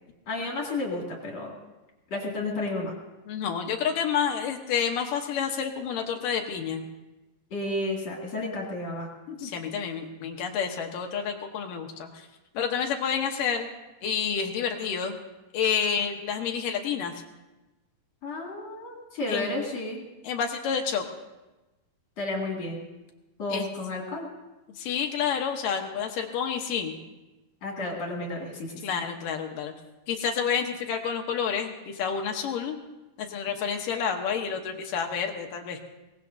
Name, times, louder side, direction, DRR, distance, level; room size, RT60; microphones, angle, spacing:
voice 1, 0.3-1.6 2.1-2.9 7.5-9.5 18.2-20.0 22.2-22.9 23.4-24.3 27.6-28.9, left 2 dB, 45° left, -2 dB, 2.9 m, -32 dB
voice 2, 3.3-6.8 9.4-12.3 12.5-13.7 14.0-15.1 15.5-17.2 19.3-19.5 20.2-21.0 23.5-23.7 24.8-27.0 28.8-29.7 30.1-32.8 33.2-35.8, left 7 dB, 70° left, 3 dB, 2.3 m, -29 dB
23.5 x 19.0 x 2.7 m, 1.1 s
omnidirectional pair, 4.7 m